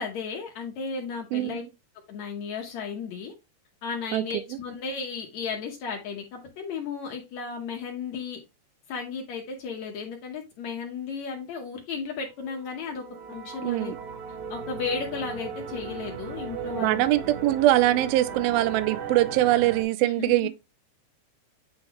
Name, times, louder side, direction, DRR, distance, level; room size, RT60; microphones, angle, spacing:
voice 1, 0.0-1.6 2.1-3.3 3.8-8.4 8.9-13.9 14.5-17.1 20.0-20.5, left 5 dB, 85° left, 1.5 m, -34 dB
sound 1, 12.4-19.8, right 6 dB, 70° right, 1.9 m, -37 dB
voice 2, 13.6-14.0 16.8-20.5, right 15 dB, 85° right, 2.2 m, -22 dB
9.5 x 3.9 x 3.0 m
omnidirectional pair, 4.7 m